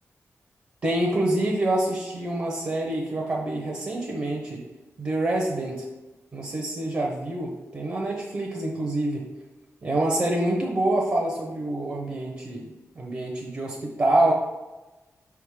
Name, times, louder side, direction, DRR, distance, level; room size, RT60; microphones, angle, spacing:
voice 1, 0.8-4.6 5.0-5.8 6.3-9.2 9.8-12.6 13.0-14.3, right 1 dB, 40° right, -1 dB, 0.7 m, -26 dB
5.7 x 3.6 x 4.7 m, 1.1 s
wide cardioid pair, 170°, 5 cm